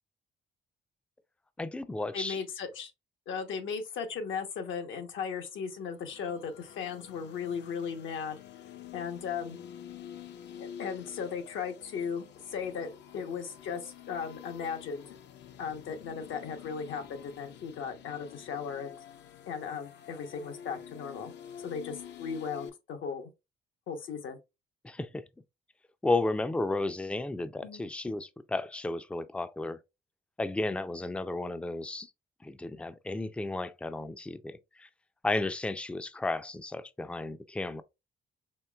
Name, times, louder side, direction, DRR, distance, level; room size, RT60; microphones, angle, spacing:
voice 1, 1.6-2.4 24.8-25.2 26.0-29.8 30.4-32.1 32.4-34.9 35.2-37.8, left 2 dB, 5° left, 0.4 m, -33 dB
voice 2, 2.1-2.9 3.3-8.4 8.9-9.6 10.6-15.1 15.6-19.0 19.5-21.3 21.6-23.3 23.9-24.4 27.6-27.9, left 6 dB, 80° left, 1.0 m, -37 dB
sound 1, 5.8-22.7, left 9 dB, 60° left, 0.6 m, -48 dB
4.4 x 3.1 x 2.3 m
cardioid pair, 90°, 20 cm